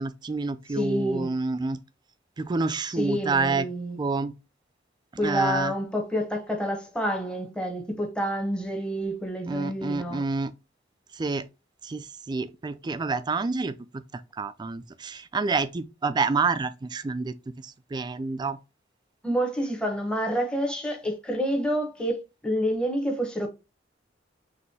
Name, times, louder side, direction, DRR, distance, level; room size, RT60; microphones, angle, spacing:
voice 1, 0.0-1.8 2.4-3.7 4.0-4.3 5.2-5.7 9.5-10.5 11.1-11.5 11.8-14.0 14.4-18.6, right 4 dB, 25° right, 0.3 m, -28 dB
voice 2, 0.7-1.3 3.0-4.0 5.2-10.2 19.2-23.5, equal, 5° left, 0.9 m, -28 dB
6.0 x 3.0 x 2.8 m
head